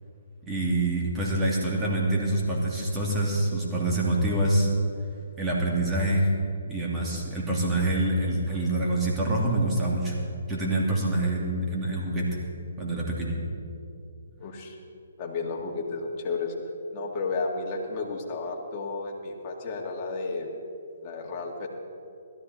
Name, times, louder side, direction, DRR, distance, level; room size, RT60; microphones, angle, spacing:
voice 1, 0.5-4.7 5.4-6.3 6.7-10.2 10.5-12.3 12.8-13.4, right 1 dB, 15° right, -3 dB, 2.6 m, -26 dB
voice 2, 14.4-14.8 15.2-16.5 16.9-20.5 21.0-21.7, left 3 dB, 30° left, -1 dB, 2.0 m, -32 dB
16.5 x 13.5 x 4.2 m, 2.5 s
hypercardioid pair, 145°, 0 cm